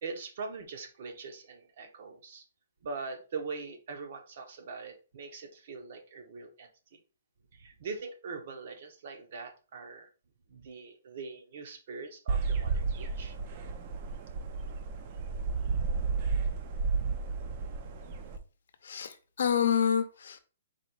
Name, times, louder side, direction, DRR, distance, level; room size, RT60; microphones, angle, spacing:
voice 1, 0.0-2.4 2.8-7.0 7.5-10.1 10.5-13.4, right 4 dB, 50° right, 0.9 m, -42 dB
sound 1, 12.3-18.4, right 4 dB, 35° right, 0.5 m, -32 dB
voice 2, 18.8-20.4, left 8 dB, 70° left, 0.7 m, -28 dB
4.2 x 2.3 x 4.6 m
hypercardioid pair, 160°, 0 cm